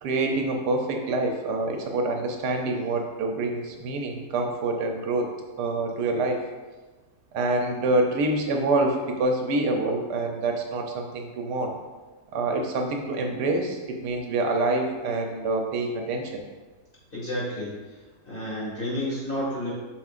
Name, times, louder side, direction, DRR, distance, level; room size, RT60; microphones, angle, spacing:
voice 1, 0.0-6.4 7.3-11.8 12.3-16.3, right 2 dB, 80° right, 3 dB, 1.3 m, -26 dB
voice 2, 17.1-17.8 18.3-19.7, left 1 dB, 30° left, -6 dB, 2.0 m, -30 dB
7.3 x 6.0 x 2.5 m, 1.3 s
omnidirectional pair, 1.8 m